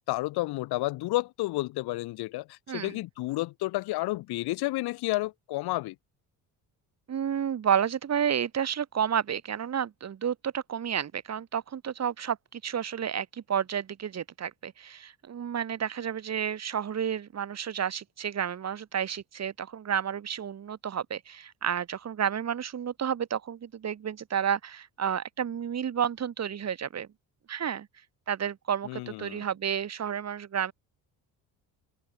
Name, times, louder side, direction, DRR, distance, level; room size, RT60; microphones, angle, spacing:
voice 1, 0.1-6.0 28.8-29.5, left 19 dB, 80° left, 2.2 m, -31 dB
voice 2, 7.1-27.1 27.5-27.9 28.3-30.7, right 8 dB, 45° right, 2.9 m, -31 dB
cardioid pair, 105°, 38 cm